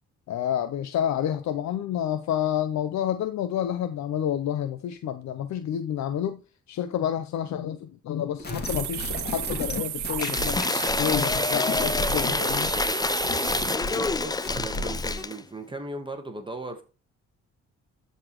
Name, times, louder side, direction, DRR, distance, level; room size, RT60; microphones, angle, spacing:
voice 1, 0.3-6.4 6.7-12.7, left 10 dB, 65° left, 0.7 m, -29 dB
sound 1, 8.4-15.2, left 2 dB, 35° left, 2.3 m, -34 dB
sound 2, 8.6-13.8, right 16 dB, 75° right, 0.5 m, -33 dB
Cheering / Applause / Crowd, 10.2-15.4, left 3 dB, 15° left, 0.4 m, -27 dB
voice 2, 14.0-16.8, right 2 dB, 15° right, 1.3 m, -37 dB
12.5 x 4.2 x 3.0 m
cardioid pair, 90°, 30 cm